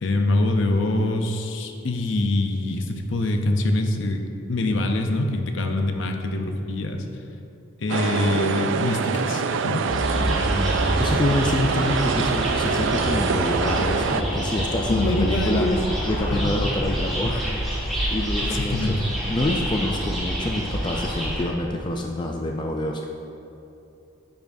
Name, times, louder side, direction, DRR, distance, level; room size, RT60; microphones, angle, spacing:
voice 1, 0.0-7.1 7.8-9.8 14.9-15.8 16.3-16.5 18.4-19.0, left 2 dB, 65° left, 4 dB, 0.7 m, -24 dB
sound 1, 7.9-14.2, right 5 dB, 65° right, 0.3 m, -25 dB
sound 2, 9.9-21.4, equal, ahead, 1.7 m, -27 dB
voice 2, 11.0-23.0, left 1 dB, 20° left, 1 dB, 0.4 m, -27 dB
10.5 x 7.2 x 2.7 m, 2.7 s
head